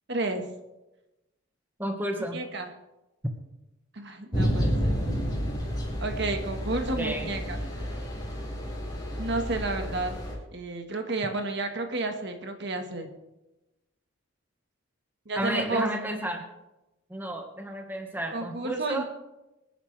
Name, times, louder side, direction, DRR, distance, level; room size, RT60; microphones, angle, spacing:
voice 1, 0.1-0.5 2.3-2.7 3.9-4.9 6.0-7.6 9.2-10.1 10.5-13.1 15.2-15.9 18.3-19.0, right 2 dB, 55° right, 5 dB, 1.5 m, -31 dB
voice 2, 1.8-2.4 7.0-7.3 15.3-16.4 17.1-19.0, right 1 dB, 10° right, 2 dB, 1.5 m, -31 dB
sound 1, 4.3-10.3, equal, 20° left, 4.8 m, -30 dB
25.5 x 9.9 x 3.4 m, 0.99 s
head